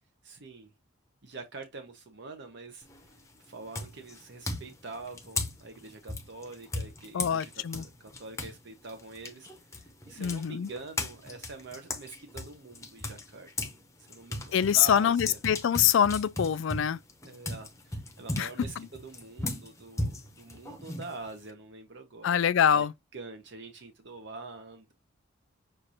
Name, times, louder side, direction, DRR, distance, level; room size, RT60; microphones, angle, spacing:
voice 1, 0.2-0.7 1.2-13.5 14.0-15.4 17.2-24.9, right 3 dB, 60° right, 0.7 m, -45 dB
sound 1, 2.8-3.2 3.7-8.6 8.9-13.8 14.1-21.5, left 2 dB, 15° left, 0.7 m, -37 dB
voice 2, 7.1-7.8 10.2-10.7 14.5-17.0 18.4-18.5 22.2-22.9, left 9 dB, 70° left, 0.4 m, -24 dB
6.5 x 2.5 x 2.8 m
head